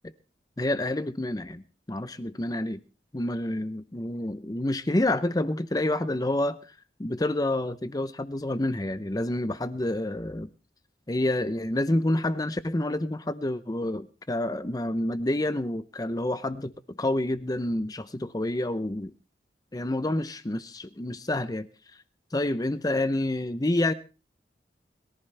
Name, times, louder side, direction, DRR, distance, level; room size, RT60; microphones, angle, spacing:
voice 1, 0.6-2.8 3.1-10.5 11.1-19.1 19.7-22.0 22.3-23.9, left 1 dB, 20° left, 12 dB, 0.6 m, -28 dB
22.5 x 14.5 x 3.3 m, 0.34 s
head